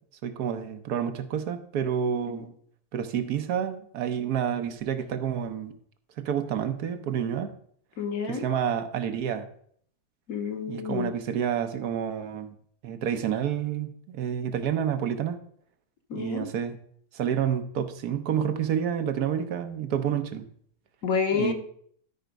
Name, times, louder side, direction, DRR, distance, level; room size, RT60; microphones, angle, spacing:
voice 1, 0.2-2.5 2.9-5.7 6.2-7.5 8.3-9.5 10.7-12.5 12.8-15.4 16.1-16.8 17.1-20.5 21.3-21.5, right 8 dB, 75° right, 9 dB, 1.4 m, -29 dB
voice 2, 8.0-8.5 10.3-11.1 16.1-16.5 21.0-21.5, left 6 dB, 65° left, 5 dB, 1.5 m, -29 dB
12.5 x 4.5 x 5.1 m, 0.62 s
omnidirectional pair, 1.7 m